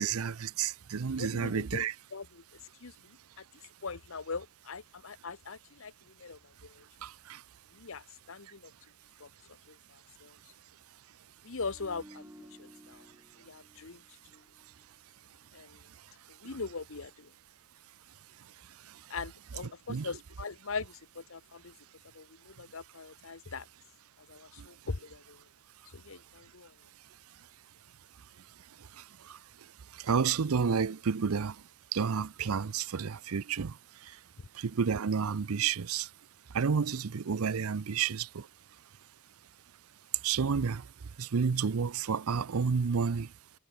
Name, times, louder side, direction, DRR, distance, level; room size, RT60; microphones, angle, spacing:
voice 1, 0.0-1.9 7.0-7.1 19.9-20.1 30.1-31.5 31.9-33.7 34.6-36.1 36.5-38.4 40.2-40.8 41.2-43.3, right 6 dB, 85° right, 0.6 m, -30 dB
voice 2, 1.2-2.4 2.8-3.4 3.8-6.8 7.7-8.7 9.2-9.3 9.7-10.4 11.4-12.3 12.6-13.1 13.4-14.0 14.3-14.4 15.5-15.9 16.3-17.3 19.1-21.7 22.1-23.7 24.2-25.4 25.8-26.7 34.4-34.5, left 4 dB, 65° left, 1.0 m, -41 dB
sound 1, 11.7-15.0 15.3-15.5, equal, 10° right, 2.3 m, -55 dB
head